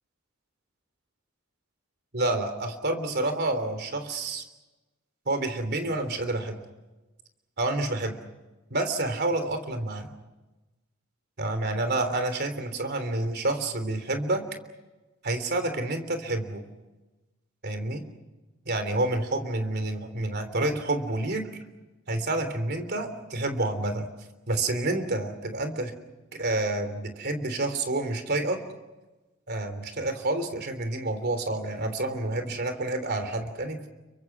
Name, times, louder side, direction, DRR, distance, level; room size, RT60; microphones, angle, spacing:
voice 1, 2.1-4.4 5.2-6.6 7.6-8.2 8.7-10.1 11.4-14.4 15.2-16.6 17.6-18.0 18.6-21.5 22.1-24.1 24.5-25.9 26.4-28.6 29.5-33.9, right 2 dB, 50° right, 8 dB, 3.3 m, -28 dB
30.0 x 24.0 x 6.1 m, 1.1 s
head